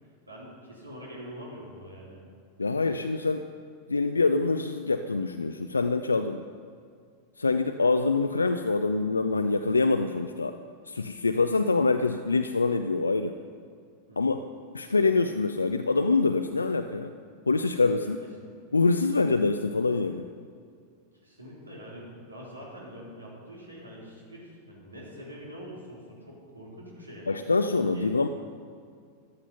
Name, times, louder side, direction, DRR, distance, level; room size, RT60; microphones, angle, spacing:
voice 1, 0.3-2.2 14.1-14.3 17.9-18.1 18.4-18.6 21.1-27.4 27.9-28.1, equal, 80° right, -4 dB, 3.9 m, -44 dB
voice 2, 2.6-3.5 3.9-6.4 7.4-10.6 10.9-13.4 14.2-14.4 14.7-17.1 17.5-18.2 18.7-20.2 27.3-28.3, left 3 dB, 80° left, 7 dB, 0.5 m, -25 dB
14.5 x 11.5 x 5.5 m, 2.2 s
figure-of-eight pair, 90°, 0 cm